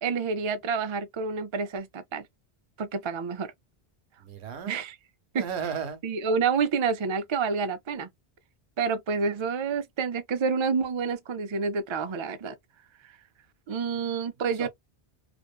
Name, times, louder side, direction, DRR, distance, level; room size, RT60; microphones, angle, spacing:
voice 1, 0.0-2.3 2.8-3.5 4.7-4.9 5.3-5.4 6.0-8.1 8.8-12.6 13.7-14.7, right 5 dB, 50° right, 0.3 m, -28 dB
voice 2, 4.2-4.7 5.3-6.0 14.6-14.7, right 7 dB, 80° right, 1.0 m, -34 dB
2.5 x 2.2 x 2.3 m
omnidirectional pair, 1.1 m